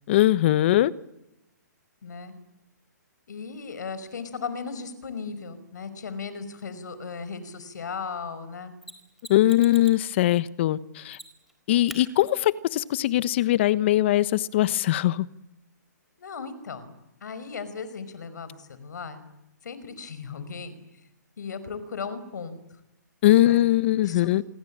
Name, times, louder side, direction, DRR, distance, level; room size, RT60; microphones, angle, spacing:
voice 1, 0.1-0.9 9.3-11.2 11.7-15.3 23.2-24.4, left 14 dB, 40° left, 1.2 m, -21 dB
voice 2, 2.0-2.3 3.3-8.8 16.2-16.9 17.2-19.2 19.6-20.7 21.4-22.6 23.4-23.6 24.0-24.3, left 5 dB, 70° left, 5.3 m, -36 dB
Mechanisms, 8.8-10.1 11.1-11.5 11.9-12.0 14.8-14.9, right 1 dB, ahead, 4.2 m, -43 dB
27.0 x 22.5 x 8.8 m
hypercardioid pair, 155°, 10 cm